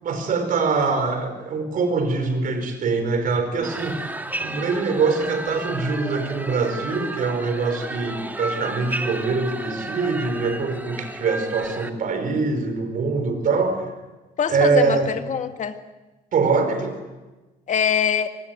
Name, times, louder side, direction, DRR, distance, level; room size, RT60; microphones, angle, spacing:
voice 1, 0.0-4.1 4.4-13.9 14.5-15.1 16.3-17.0, right 4 dB, 55° right, 9 dB, 5.0 m, -23 dB
sound 1, 3.6-11.9, right 1 dB, 10° right, 2.2 m, -33 dB
voice 2, 14.4-15.8 17.7-18.3, left 8 dB, 45° left, 7 dB, 2.0 m, -23 dB
25.0 x 19.0 x 9.5 m, 1.2 s
cardioid pair, 110°, 17 cm